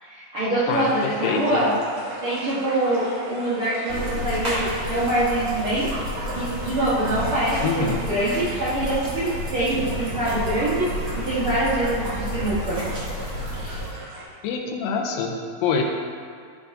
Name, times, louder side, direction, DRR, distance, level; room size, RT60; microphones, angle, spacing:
voice 1, 0.0-1.7 2.2-5.9 6.3-10.9 11.1-12.8 13.6-13.8, right 1 dB, 60° right, -11 dB, 1.4 m, -24 dB
voice 2, 0.7-1.6 7.6-8.0 14.4-15.8, left 5 dB, 80° left, 2 dB, 2.2 m, -25 dB
sound 1, 0.7-14.2, right 1 dB, 85° right, 1.1 m, -37 dB
sound 2, 3.9-13.9, left 1 dB, 35° right, 1.1 m, -31 dB
13.0 x 4.7 x 2.6 m, 2.1 s
omnidirectional pair, 4.2 m